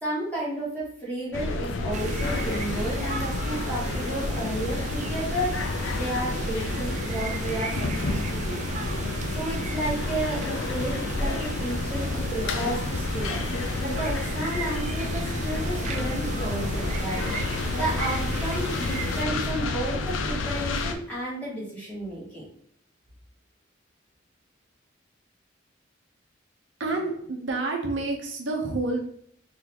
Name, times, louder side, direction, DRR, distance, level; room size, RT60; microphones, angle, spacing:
voice 1, 0.0-5.5 5.9-8.6 9.3-17.3 17.8-22.4, right 1 dB, 10° left, -7 dB, 1.6 m, -32 dB
sound 1, 1.3-20.9, left 3 dB, 90° left, 0.5 m, -30 dB
sound 2, 1.9-19.2, right 4 dB, 35° right, 0.3 m, -36 dB
voice 2, 26.8-29.0, right 2 dB, 75° right, 1 dB, 0.8 m, -28 dB
3.9 x 3.3 x 2.9 m, 0.64 s
head